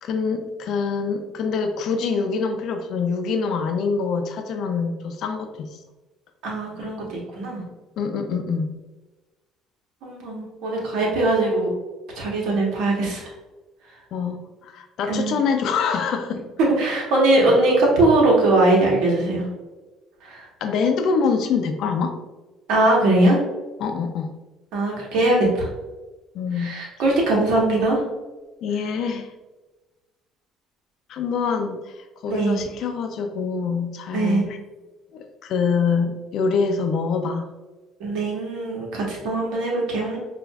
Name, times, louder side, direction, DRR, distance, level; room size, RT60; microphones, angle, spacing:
voice 1, 0.0-5.8 8.0-8.7 14.1-16.4 20.6-22.1 23.8-24.3 26.3-26.8 28.6-29.3 31.1-34.6 35.1-37.5, left 5 dB, 65° left, 5 dB, 0.5 m, -25 dB
voice 2, 6.4-7.6 10.0-11.7 12.1-13.3 15.1-15.4 16.8-19.4 20.2-20.5 22.7-23.4 24.7-25.7 26.6-28.0 32.3-32.6 34.1-34.4 38.0-40.2, right 2 dB, 75° right, -2 dB, 1.2 m, -21 dB
5.1 x 2.5 x 2.3 m, 1.2 s
supercardioid pair, 85°, 0 cm